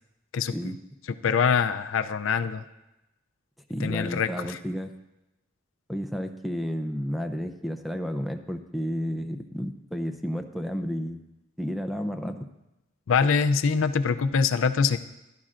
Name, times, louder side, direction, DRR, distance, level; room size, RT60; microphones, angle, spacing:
voice 1, 1.2-2.6 3.8-4.6 13.1-15.0, left 5 dB, 65° left, 10 dB, 0.4 m, -24 dB
voice 2, 3.7-4.9 5.9-11.2 11.6-12.5, equal, ahead, 7 dB, 0.5 m, -31 dB
16.0 x 11.5 x 2.5 m, 0.94 s
head